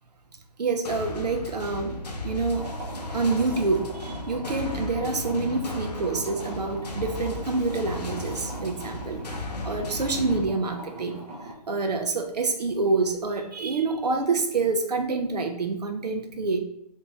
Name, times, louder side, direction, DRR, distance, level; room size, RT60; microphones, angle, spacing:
voice 1, 0.6-2.0 2.2-2.7 3.1-9.2 9.7-11.2 11.7-16.6, right 3 dB, 80° right, 5 dB, 0.7 m, -27 dB
sound 1, 0.8-10.4, left 2 dB, 85° left, 0.9 m, -35 dB
sound 2, 2.5-11.5, right 1 dB, 20° right, 0.5 m, -40 dB
3.5 x 2.9 x 2.9 m, 0.78 s
hypercardioid pair, 165°, 21 cm